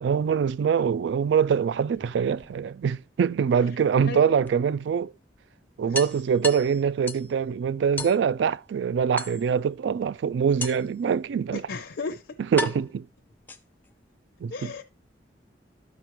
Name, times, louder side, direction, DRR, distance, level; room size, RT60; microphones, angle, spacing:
voice 1, 0.0-5.1 5.8-11.6 12.5-13.1 14.4-14.7, right 7 dB, 75° right, 0.3 m, -24 dB
sound 1, 1.8-3.0 4.5-4.6 4.9-5.0 5.3-5.4 5.9-7.3 8.0-8.2 9.2-9.7 10.6-11.0 11.9-12.0 12.6-13.9, left 2 dB, 10° left, 0.5 m, -35 dB
voice 2, 4.0-4.4 11.5-12.2 14.5-14.8, left 4 dB, 80° left, 0.6 m, -34 dB
12.5 x 5.1 x 3.0 m
head